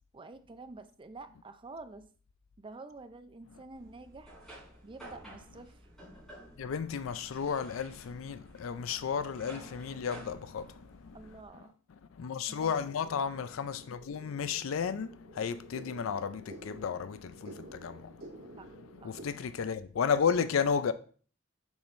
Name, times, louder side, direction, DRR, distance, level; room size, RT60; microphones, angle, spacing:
voice 1, 0.1-2.1 2.6-4.3 4.8-5.8 11.1-11.8 12.5-12.7 18.6-18.7 19.0-19.2, right 3 dB, 25° right, 0.5 m, -48 dB
sound 1, 3.7-11.5, right 1 dB, ahead, 3.5 m, -52 dB
voice 2, 6.6-11.2 11.9-20.9, left 6 dB, 85° left, 0.4 m, -33 dB
sound 2, 12.8-19.2, right 2 dB, 85° right, 2.5 m, -51 dB
7.0 x 6.1 x 2.6 m
head